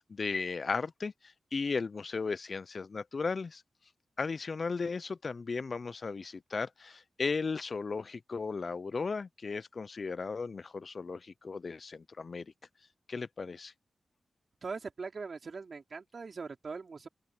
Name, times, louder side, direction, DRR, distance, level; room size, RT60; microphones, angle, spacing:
voice 1, 0.0-3.6 4.2-12.5 13.1-13.7, left 4 dB, 45° left, 0.3 m, -36 dB
voice 2, 14.6-17.1, right 4 dB, 50° right, 4.5 m, -41 dB
open air
wide cardioid pair, 135°, 0 cm